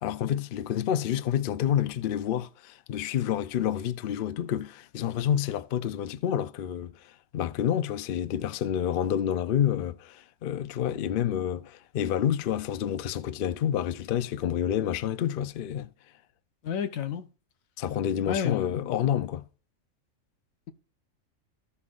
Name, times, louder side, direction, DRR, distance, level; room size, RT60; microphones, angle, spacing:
voice 1, 0.0-15.9 17.8-19.4, left 10 dB, 60° left, 0.6 m, -29 dB
voice 2, 16.6-17.3 18.3-18.9, left 8 dB, 85° left, 1.2 m, -31 dB
14.5 x 5.7 x 2.4 m
omnidirectional pair, 1.4 m